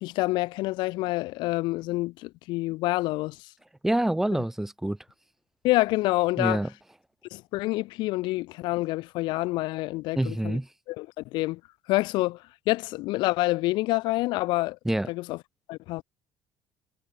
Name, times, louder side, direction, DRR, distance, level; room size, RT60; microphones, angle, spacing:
voice 1, 0.0-3.4 5.6-6.6 7.3-10.6 10.9-11.6 11.9-14.8 15.1-15.4 15.7-16.0, left 20 dB, 75° left, 1.3 m, -27 dB
voice 2, 3.8-5.0 6.4-6.7 10.1-10.7 14.8-15.1, right 1 dB, 5° right, 3.3 m, -26 dB
cardioid pair, 155°, 8 cm